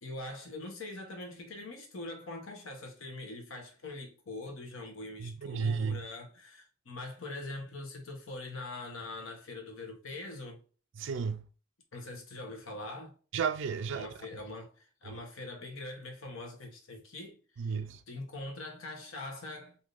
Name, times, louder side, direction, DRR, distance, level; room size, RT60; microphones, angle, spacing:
voice 1, 0.0-10.6 11.9-13.1 13.9-17.8 18.1-19.8, left 2 dB, 85° left, 1.0 m, -43 dB
voice 2, 5.2-6.0 11.0-11.5 13.3-14.1 15.1-15.2 17.6-18.0, right 5 dB, 65° right, 0.4 m, -33 dB
3.5 x 2.7 x 2.5 m
head